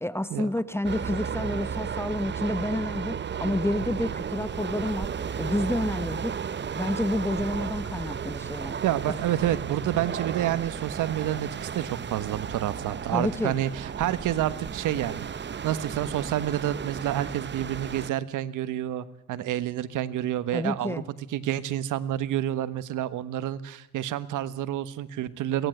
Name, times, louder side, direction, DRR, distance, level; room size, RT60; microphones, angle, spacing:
voice 1, 0.0-5.1 5.4-6.3 6.7-8.8 13.1-13.6 20.5-21.1, left 1 dB, 10° left, 14 dB, 1.1 m, -29 dB
sound 1, 0.8-18.1, right 7 dB, 35° right, 0.9 m, -34 dB
voice 2, 8.8-15.3 15.6-21.0 21.3-25.7, right 12 dB, 85° right, 14 dB, 1.5 m, -29 dB
22.5 x 18.5 x 8.0 m, 0.81 s
cardioid pair, 90°, 30 cm